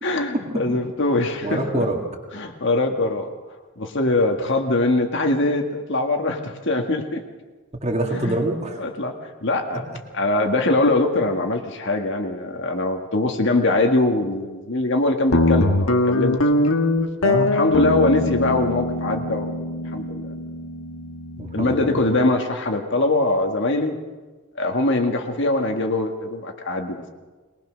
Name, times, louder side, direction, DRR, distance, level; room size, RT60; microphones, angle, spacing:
voice 1, 0.0-1.8 2.3-3.3 3.8-7.2 8.1-8.4 8.8-9.1 9.4-9.8 10.1-16.4 17.5-19.6 19.9-20.3 21.5-24.0 24.6-27.1, left 2 dB, 60° left, 4 dB, 1.8 m, -22 dB
voice 2, 1.4-2.0 7.8-8.8 17.2-17.5 21.4-22.0, right 1 dB, 30° right, 0 dB, 2.1 m, -25 dB
Guitar, 15.3-22.0, left 2 dB, 85° left, 1.7 m, -22 dB
22.0 x 19.0 x 6.3 m, 1.3 s
head